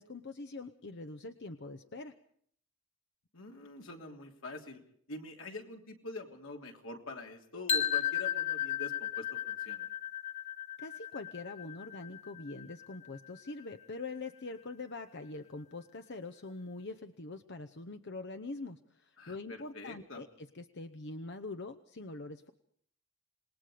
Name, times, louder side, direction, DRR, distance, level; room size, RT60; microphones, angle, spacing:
voice 1, 0.0-2.1 10.8-22.5, left 3 dB, 60° left, 10 dB, 0.9 m, -44 dB
voice 2, 3.3-4.8 5.1-9.9 19.2-20.2, left 2 dB, 85° left, 2 dB, 3.2 m, -45 dB
sound 1, 7.7-13.6, left 9 dB, 35° left, 1.1 m, -35 dB
27.0 x 20.5 x 5.1 m, 0.63 s
head